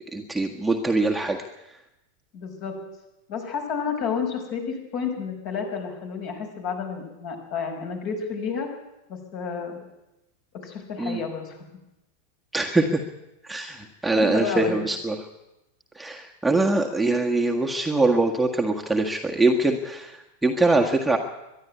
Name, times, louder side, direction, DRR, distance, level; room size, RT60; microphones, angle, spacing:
voice 1, 0.1-1.4 11.0-11.2 12.5-13.0 13.4-15.1 15.9-21.2, right 2 dB, 5° right, 1 dB, 1.7 m, -23 dB
voice 2, 2.3-2.8 3.3-8.7 9.1-9.7 10.6-11.6 14.2-14.9, left 6 dB, 45° left, 3 dB, 5.5 m, -30 dB
23.5 x 11.5 x 9.7 m, 0.93 s
figure-of-eight pair, 90°, 0 cm